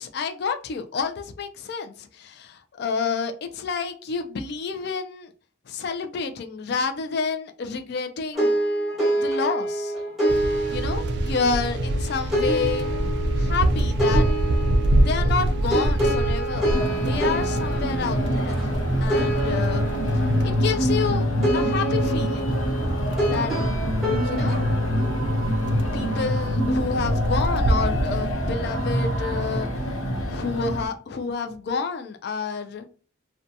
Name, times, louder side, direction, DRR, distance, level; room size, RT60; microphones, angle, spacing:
voice 1, 0.0-5.3 5.7-8.5 9.1-9.9 10.7-12.9 13.4-14.3 15.0-18.6 19.0-19.9 20.4-21.3 21.5-22.6 23.3-23.5 24.2-24.6 25.9-29.7 30.2-32.9, left 5 dB, 50° left, 6 dB, 0.3 m, -29 dB
sound 1, 8.3-24.8, right 1 dB, ahead, 1.0 m, -27 dB
sound 2, 10.3-20.4 22.2-28.3, right 1 dB, 55° right, 0.3 m, -26 dB
sound 3, 16.7-30.9, equal, 85° left, 0.7 m, -25 dB
2.6 x 2.2 x 2.6 m, 0.39 s
head